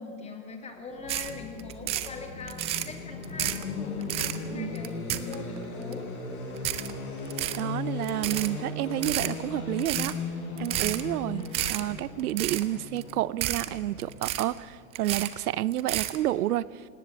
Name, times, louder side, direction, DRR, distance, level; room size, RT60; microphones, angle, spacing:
voice 1, 0.0-6.1 11.3-11.6, left 3 dB, 15° left, 4 dB, 2.3 m, -42 dB
sound 1, 0.9-14.8, left 4 dB, 80° left, 5.3 m, -37 dB
sound 2, 1.1-1.3 1.6-2.1 2.5-2.9 3.2-3.6 4.0-4.4 4.8-5.6 5.9-6.0 6.6-6.9 7.3-7.6 8.0-8.5 8.9-9.3 9.8-10.1 10.6-11.0 11.4-11.8 12.2-12.6 13.0-13.1 13.4-13.7 14.0-14.6 15.0-15.3 15.7-16.2, right 14 dB, 15° right, 0.4 m, -30 dB
voice 2, 7.6-10.1 10.6-16.8, right 14 dB, 90° right, 20 dB, 0.7 m, -30 dB
19.0 x 18.0 x 7.5 m, 2.4 s
supercardioid pair, 145°, 43 cm